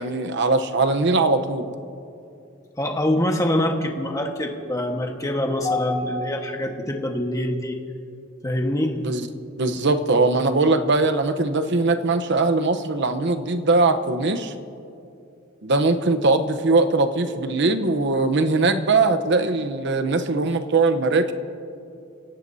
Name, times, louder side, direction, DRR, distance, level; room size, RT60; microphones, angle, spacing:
voice 1, 0.0-1.7 9.0-9.3 9.6-14.5 15.6-21.3, right 3 dB, 60° right, 10 dB, 0.9 m, -21 dB
voice 2, 2.8-7.8 8.4-8.9, left 1 dB, 15° left, 2 dB, 1.4 m, -24 dB
30.0 x 17.0 x 2.8 m, 2.6 s
head